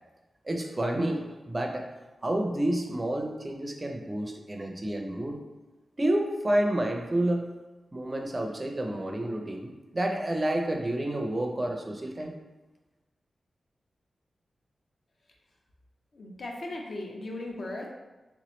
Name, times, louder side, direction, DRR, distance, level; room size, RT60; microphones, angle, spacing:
voice 1, 0.4-1.9 2.2-5.4 6.0-7.5 7.9-12.4, right 1 dB, 25° right, 2 dB, 0.4 m, -29 dB
voice 2, 16.1-17.9, left 2 dB, 60° left, 0 dB, 0.6 m, -37 dB
3.3 x 2.9 x 3.0 m, 1.1 s
wide cardioid pair, 105°, 0 cm